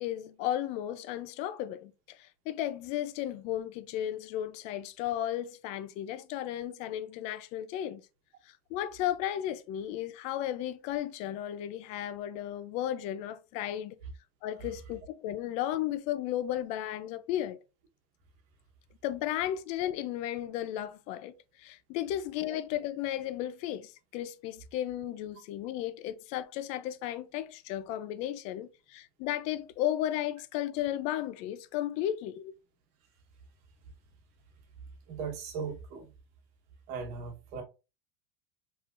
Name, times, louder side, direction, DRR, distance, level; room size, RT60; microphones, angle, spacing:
voice 1, 0.0-8.0 8.5-14.0 14.4-17.6 19.0-32.5, left 12 dB, 55° left, 0.4 m, -34 dB
voice 2, 35.1-36.1 36.9-37.6, right 5 dB, 55° right, 1.1 m, -38 dB
3.7 x 3.0 x 2.4 m
supercardioid pair, 135°, 14 cm